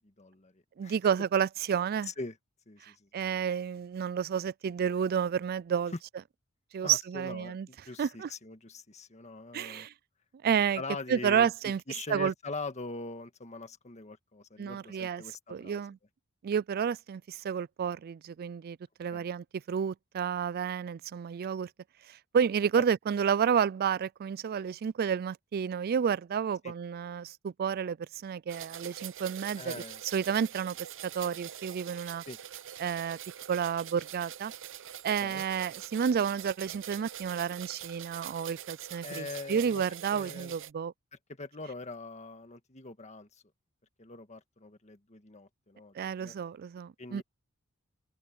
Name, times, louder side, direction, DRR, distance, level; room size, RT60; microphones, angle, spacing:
voice 1, 0.0-0.9 2.1-2.4 2.7-3.1 6.8-9.9 10.7-15.8 19.1-19.2 22.7-22.8 26.6-26.7 29.6-30.0 32.3-32.4 35.2-35.4 39.0-39.8 40.1-40.5 41.4-43.4 44.0-46.4 47.0-47.2, left 3 dB, 35° left, 1.7 m, -42 dB
voice 2, 0.8-2.1 2.8-5.9 6.7-7.7 8.0-8.3 9.5-9.9 10.4-10.8 11.1-11.8 12.1-12.3 14.6-15.2 15.5-16.0 16.4-21.7 22.1-29.7 30.1-30.8 31.0-32.2 32.8-33.2 33.5-34.5 35.0-40.9 46.0-47.2, right 7 dB, 45° right, 0.3 m, -30 dB
sound 1, 28.5-40.7, right 10 dB, 60° right, 0.9 m, -44 dB
head